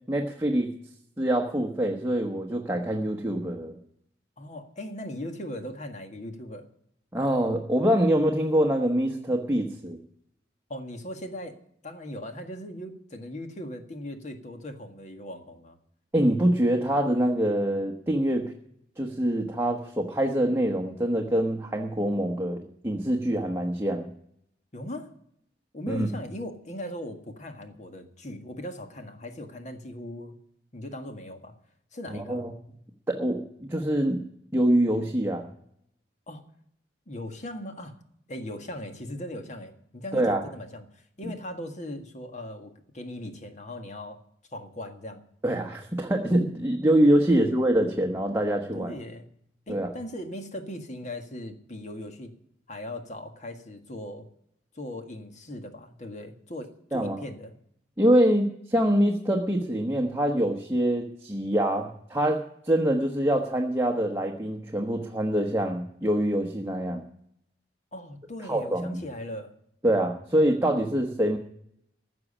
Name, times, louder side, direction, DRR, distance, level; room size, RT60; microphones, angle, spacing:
voice 1, 0.1-0.7 1.2-3.8 7.1-10.0 16.1-18.5 19.0-24.1 25.9-26.1 32.1-32.5 33.1-34.2 34.5-35.5 40.1-40.4 45.4-48.9 49.7-49.9 56.9-57.2 58.0-67.0 68.4-69.0 69.8-71.4, right 1 dB, 15° right, 1 dB, 1.1 m, -25 dB
voice 2, 4.4-6.7 10.7-11.6 11.8-15.8 24.7-25.1 25.7-30.4 30.7-31.6 31.9-32.5 36.3-36.4 37.1-38.0 38.3-44.2 44.5-45.2 47.3-47.5 48.7-49.3 49.7-52.3 52.7-54.3 54.8-57.6 67.9-69.5, left 1 dB, 45° left, 6 dB, 1.7 m, -39 dB
15.5 x 6.1 x 10.0 m, 0.72 s
head